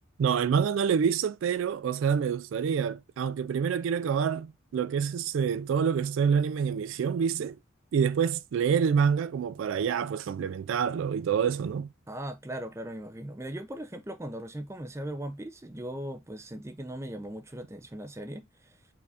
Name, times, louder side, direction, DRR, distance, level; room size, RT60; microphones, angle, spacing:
voice 1, 0.2-7.6 7.9-11.9, right 7 dB, 75° right, 0.3 m, -27 dB
voice 2, 12.1-18.8, right 1 dB, 15° right, 0.5 m, -39 dB
4.9 x 2.5 x 3.3 m
head